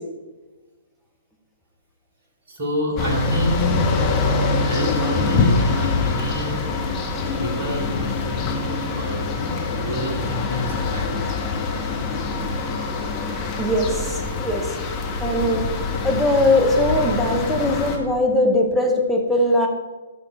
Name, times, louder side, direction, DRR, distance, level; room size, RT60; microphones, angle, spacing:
voice 1, 2.5-4.0 4.6-6.7 7.4-11.3, left 1 dB, 40° right, -1 dB, 2.5 m, -28 dB
sound 1, 3.0-18.0, left 3 dB, 25° left, 1.3 m, -24 dB
voice 2, 13.6-14.7 15.2-15.7 16.0-19.7, left 1 dB, 5° right, 2 dB, 1.2 m, -20 dB
12.5 x 6.3 x 4.1 m, 1.2 s
figure-of-eight pair, 120°, 0 cm